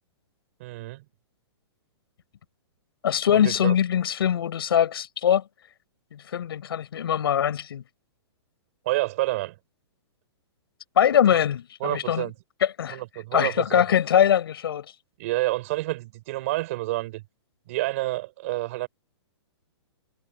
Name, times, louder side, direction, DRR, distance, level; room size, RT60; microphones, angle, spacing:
voice 1, 0.6-1.0 3.6-3.7 8.8-9.6 11.8-12.3 12.9-13.8 15.2-17.2 17.7-18.9, right 19 dB, 30° right, 6.2 m, -28 dB
voice 2, 3.0-5.4 6.1-7.8 11.0-12.3 12.6-13.0 13.3-14.9, left 9 dB, 55° left, 7.1 m, -22 dB
hypercardioid pair, 180°, 15 cm